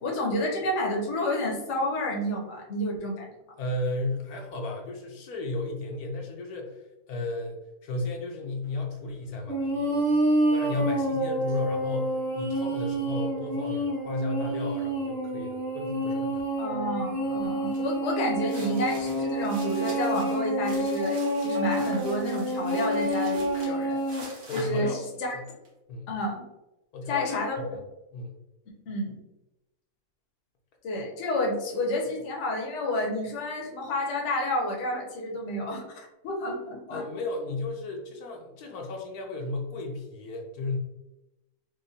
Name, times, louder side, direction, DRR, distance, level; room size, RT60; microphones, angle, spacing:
voice 1, 0.0-3.3 16.6-25.3 26.1-26.4 27.1-27.6 28.9-29.2 30.8-37.0, left 1 dB, 60° left, -1 dB, 0.9 m, -30 dB
voice 2, 3.6-10.1 10.5-16.4 24.5-25.0 25.3-25.4 25.9-26.1 26.9-27.7 28.1-28.3 36.9-40.8, left 2 dB, 80° left, 1 dB, 1.1 m, -34 dB
sound 1, 9.5-24.2, right 1 dB, 25° right, 0.8 m, -28 dB
sound 2, 17.7-17.9 18.3-25.7, right 2 dB, 65° right, 1.4 m, -45 dB
4.2 x 2.2 x 2.6 m, 0.95 s
omnidirectional pair, 1.6 m